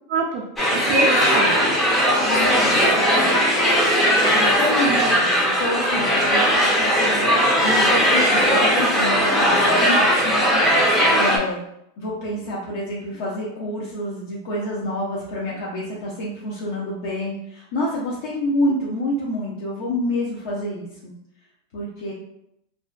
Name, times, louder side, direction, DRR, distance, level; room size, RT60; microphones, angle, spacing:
voice 1, 0.1-0.4 0.7-1.6 10.7-11.3, right 3 dB, 45° right, -2 dB, 0.4 m, -26 dB
sound 1, 0.6-11.4, equal, 10° left, 0.5 m, -18 dB
voice 2, 2.2-3.4 4.3-10.6 11.1-11.6 12.0-21.1 21.7-22.1, left 1 dB, 60° left, -5 dB, 0.6 m, -28 dB
2.5 x 2.2 x 2.4 m, 0.79 s
supercardioid pair, 145°, 0 cm